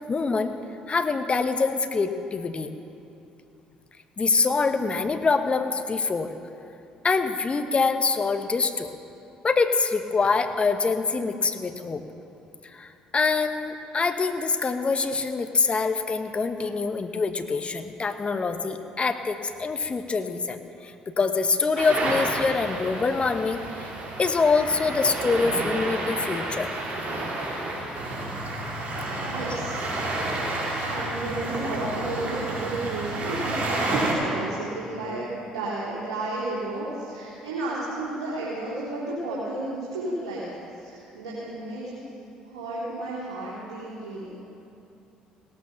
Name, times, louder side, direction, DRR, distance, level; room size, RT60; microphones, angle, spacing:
voice 1, 0.1-0.5 0.9-2.7 4.2-6.3 7.0-8.9 9.4-12.0 12.6-23.9 24.2-26.7 29.4-29.5, left 4 dB, 35° left, 8 dB, 1.2 m, -25 dB
sound 1, 21.8-34.1, right 2 dB, 45° right, 4.3 m, -30 dB
voice 2, 29.2-29.8 30.8-41.9 42.4-44.3, right 2 dB, 80° right, -8 dB, 3.3 m, -32 dB
17.5 x 13.0 x 5.9 m, 2.7 s
hypercardioid pair, 55°, 4 cm